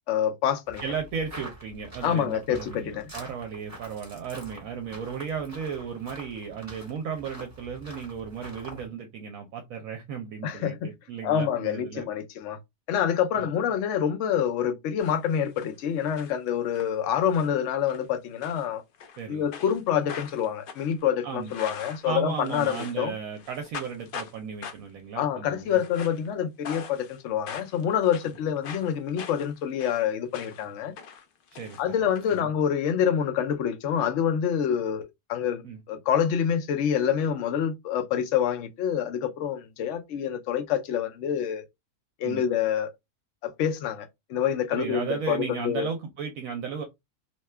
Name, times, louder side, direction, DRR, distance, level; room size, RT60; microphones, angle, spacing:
voice 1, 0.1-0.8 2.0-3.1 10.4-10.9 11.2-12.6 12.9-18.8 19.3-23.1 25.2-30.9 31.8-35.6 35.9-41.6 42.2-42.9 43.4-45.9, left 9 dB, 65° left, 0.8 m, -27 dB
sound 1, 0.7-8.9, right 1 dB, 10° right, 1.1 m, -45 dB
voice 2, 0.8-12.1 13.3-13.5 19.2-19.5 21.2-21.5 22.0-25.8 31.5-31.8 32.4-32.5 35.6-35.8 42.2-42.4 44.7-46.8, right 6 dB, 75° right, 0.9 m, -35 dB
sound 2, 15.0-15.7 16.0-16.9 17.3-17.6 17.9-18.1 18.4-19.2 19.5-23.1 23.4-24.3 24.6-25.0 25.6-26.3 26.6-27.2 27.5-30.7 31.0-32.4, left 6 dB, 85° left, 0.4 m, -42 dB
2.7 x 2.2 x 3.2 m
omnidirectional pair, 1.5 m